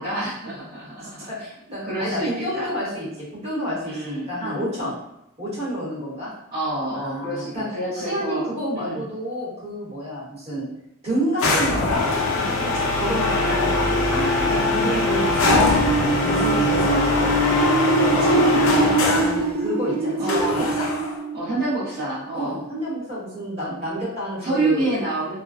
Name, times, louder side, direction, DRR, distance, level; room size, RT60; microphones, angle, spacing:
voice 1, 0.0-1.5 1.8-2.7 3.8-4.6 6.5-8.5 8.7-9.0 14.4-14.6 18.1-18.5 20.2-20.8 21.3-22.6 24.4-25.4, right 2 dB, 45° right, -11 dB, 0.6 m, -28 dB
voice 2, 1.3-5.0 5.4-6.3 6.9-7.7 7.9-10.7 11.0-15.6 16.2-20.9 22.3-24.9, equal, 30° right, -8 dB, 1.0 m, -29 dB
sound 1, 11.4-19.4 20.3-21.2, left 2 dB, 70° left, 0.4 m, -21 dB
sound 2, 15.5-22.3, right 2 dB, 85° right, 0.3 m, -24 dB
2.4 x 2.2 x 2.3 m, 0.83 s
head